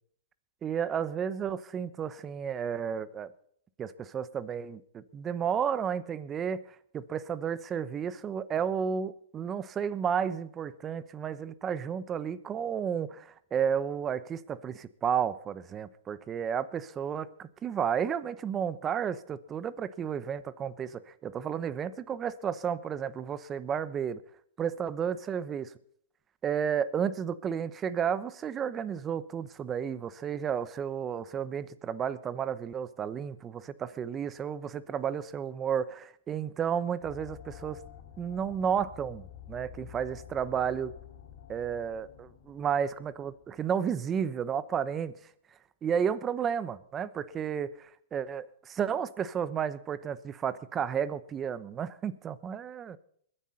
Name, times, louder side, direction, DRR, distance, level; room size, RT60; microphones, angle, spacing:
voice 1, 0.6-3.3 3.8-6.6 6.9-24.2 24.6-25.7 26.4-37.8 38.2-40.9 41.5-45.1 45.8-53.0, right 8 dB, 20° right, 16 dB, 0.9 m, -32 dB
sound 1, 37.0-43.7, left 10 dB, 55° left, 7.7 m, -50 dB
22.0 x 10.0 x 4.1 m, 0.63 s
hypercardioid pair, 135°, 0 cm